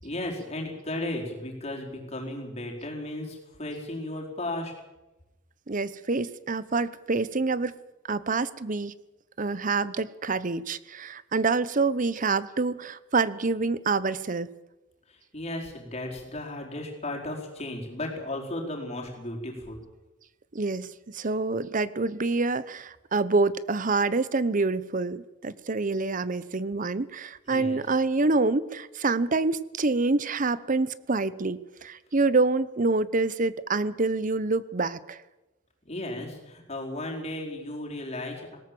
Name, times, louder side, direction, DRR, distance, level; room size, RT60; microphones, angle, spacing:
voice 1, 0.0-4.7 15.1-19.8 27.5-27.8 35.8-38.6, left 1 dB, 35° left, -1 dB, 4.7 m, -35 dB
voice 2, 5.7-7.8 8.1-8.9 9.4-14.5 20.5-35.2, right 3 dB, 40° right, 16 dB, 0.8 m, -27 dB
19.5 x 18.0 x 7.7 m, 1.0 s
head